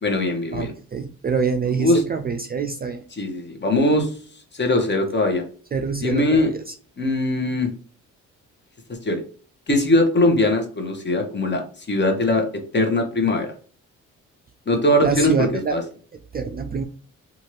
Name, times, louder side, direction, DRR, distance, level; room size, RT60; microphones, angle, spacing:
voice 1, 0.0-0.7 1.8-2.0 3.1-4.1 4.5-5.4 6.0-6.5 7.0-7.7 9.0-9.2 9.7-11.6 11.9-12.5 12.7-13.5 14.7-15.8, left 1 dB, 30° left, 3 dB, 1.0 m, -20 dB
voice 2, 0.5-3.0 5.7-6.7 15.0-15.8 16.3-16.8, right 5 dB, 30° right, 5 dB, 0.3 m, -25 dB
2.7 x 2.5 x 3.1 m, 0.42 s
supercardioid pair, 60°, 34 cm